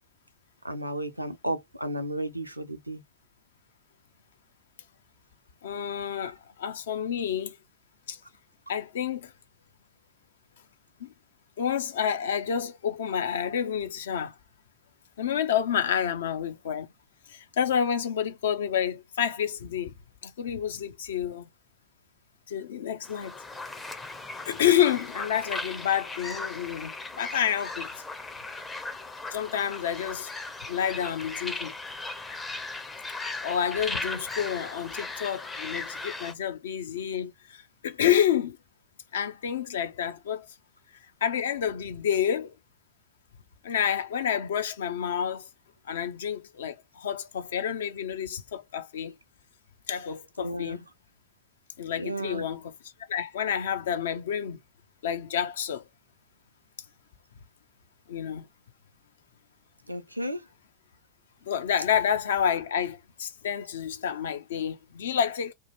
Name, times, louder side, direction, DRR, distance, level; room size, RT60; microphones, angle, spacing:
voice 1, 0.6-3.0 50.4-50.8 52.0-52.5 59.9-60.4, right 1 dB, 85° right, 0.5 m, -33 dB
voice 2, 5.6-7.6 8.1-8.2 8.7-9.3 11.0-11.1 11.6-14.3 15.2-16.9 17.3-19.9 20.2-21.5 22.5-23.4 24.5-27.9 29.3-30.3 30.7-31.7 33.4-38.6 39.1-40.5 41.2-42.5 43.6-45.5 45.8-49.1 49.9-50.8 51.8-52.7 53.1-54.6 55.0-55.8 58.1-58.5 61.4-65.5, left 9 dB, 60° left, 0.5 m, -29 dB
sound 1, 23.0-36.3, left 3 dB, 10° left, 0.5 m, -37 dB
2.8 x 2.2 x 2.8 m
figure-of-eight pair, 90°, 0 cm